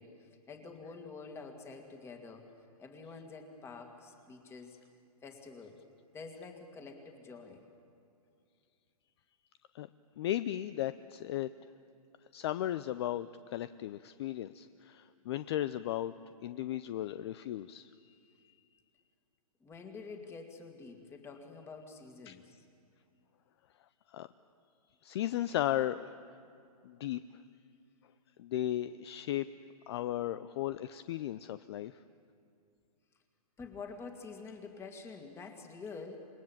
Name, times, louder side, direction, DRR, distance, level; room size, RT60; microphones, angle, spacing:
voice 1, 0.0-2.5 2.8-4.8 5.2-5.8 6.1-7.6 19.6-22.6 33.6-36.2, left 4 dB, 15° left, 4 dB, 2.1 m, -47 dB
voice 2, 10.2-11.5 12.3-16.1 16.4-18.6 22.3-22.4 24.1-24.3 25.0-26.1 26.8-27.2 28.4-29.5 29.9-32.0, left 13 dB, 45° left, 14 dB, 0.5 m, -35 dB
27.0 x 21.5 x 7.3 m, 2.4 s
hypercardioid pair, 145°, 20 cm